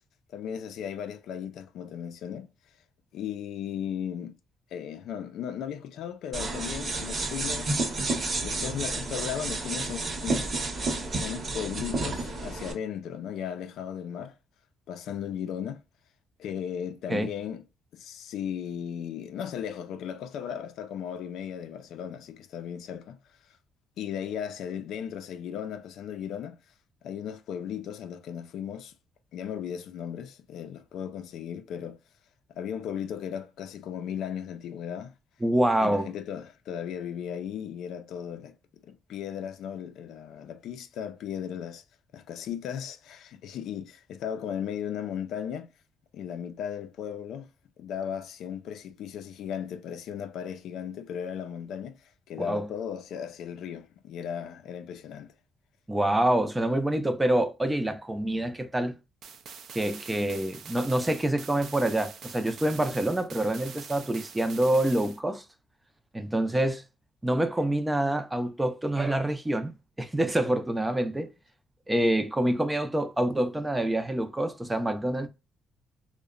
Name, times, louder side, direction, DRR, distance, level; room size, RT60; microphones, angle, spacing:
voice 1, 0.3-2.5 3.1-4.3 4.7-7.9 8.4-10.5 11.2-14.3 14.9-15.8 16.4-17.6 17.9-23.2 24.0-26.6 27.0-28.9 29.3-32.0 32.5-35.1 35.8-38.5 38.8-41.8 42.1-45.7 46.1-47.5 47.8-52.0 52.3-55.3, left 8 dB, 80° left, 0.4 m, -36 dB
sound 1, 6.3-12.7, right 2 dB, 45° right, 0.8 m, -31 dB
voice 2, 35.4-36.1 52.4-52.7 55.9-58.9 59.7-65.4 66.1-66.8 67.2-69.7 70.0-71.3 71.9-75.3, right 1 dB, 15° right, 0.4 m, -26 dB
sound 2, 59.2-65.2, right 6 dB, 70° right, 0.4 m, -44 dB
2.7 x 2.1 x 2.3 m
cardioid pair, 90°, 0 cm